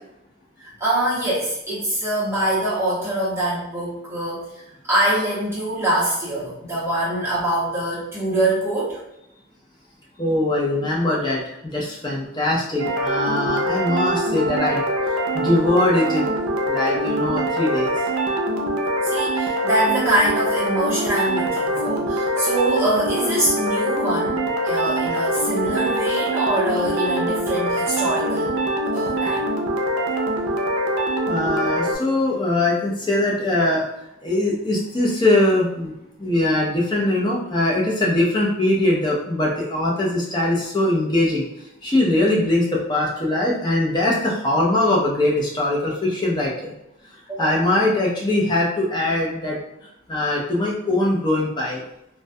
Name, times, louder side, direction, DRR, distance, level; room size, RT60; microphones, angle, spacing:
voice 1, 0.6-9.0 19.0-24.4 24.6-28.6 28.9-29.4 47.3-47.6, right 1 dB, 10° right, -7 dB, 0.7 m, -24 dB
voice 2, 10.2-14.8 15.3-16.3 16.7-17.9 31.3-33.9 34.2-35.9 36.2-41.4 41.8-46.7 47.4-49.6 50.1-51.8, left 1 dB, 20° left, -4 dB, 0.5 m, -21 dB
sound 1, 12.8-32.0, right 1 dB, 85° right, 0.4 m, -23 dB
2.2 x 2.2 x 2.6 m, 0.84 s
head